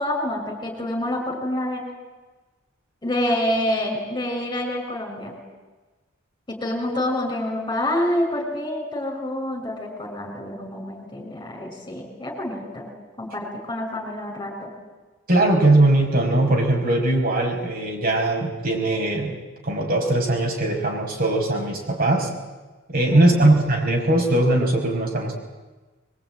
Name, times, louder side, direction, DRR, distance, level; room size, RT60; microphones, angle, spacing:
voice 1, 0.0-1.8 3.0-5.4 6.5-12.9 13.2-14.7 23.1-23.5, left 1 dB, 20° left, 1 dB, 6.0 m, -27 dB
voice 2, 15.3-19.4 19.6-22.3 22.9-25.3, right 2 dB, 45° right, 1 dB, 5.8 m, -20 dB
24.0 x 22.5 x 9.2 m, 1.2 s
head